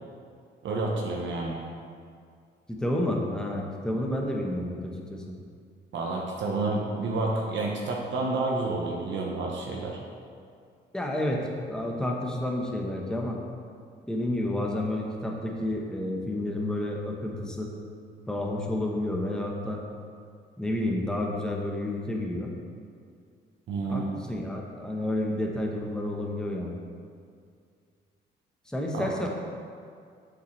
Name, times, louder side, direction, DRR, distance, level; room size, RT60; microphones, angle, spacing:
voice 1, 0.6-1.6 5.9-10.0 23.7-24.1 28.9-29.1, right 3 dB, 70° right, -1 dB, 1.0 m, -29 dB
voice 2, 2.7-5.2 10.9-13.4 14.1-17.7 18.3-19.8 20.6-22.5 23.9-26.8 28.7-29.3, left 1 dB, 5° left, -1 dB, 1.0 m, -30 dB
7.2 x 7.1 x 3.2 m, 2.2 s
cardioid pair, 90°, 20 cm